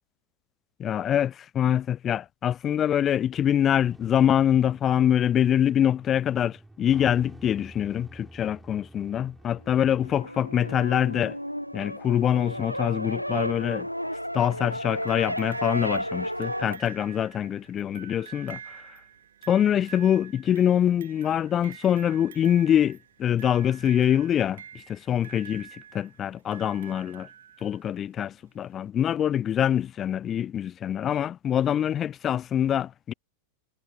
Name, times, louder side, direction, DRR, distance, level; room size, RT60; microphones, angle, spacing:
voice 1, 0.8-11.4 11.7-13.9 14.3-18.8 19.5-27.3 27.6-33.1, left 10 dB, 25° left, 0.5 m, -24 dB
sound 1, 3.9-10.2, right 2 dB, 5° right, 6.4 m, -49 dB
sound 2, 9.8-16.8, equal, 90° left, 1.0 m, -33 dB
sound 3, 15.1-27.9 28.9-29.0, right 9 dB, 65° right, 3.1 m, -47 dB
figure-of-eight pair, 90°, 0 cm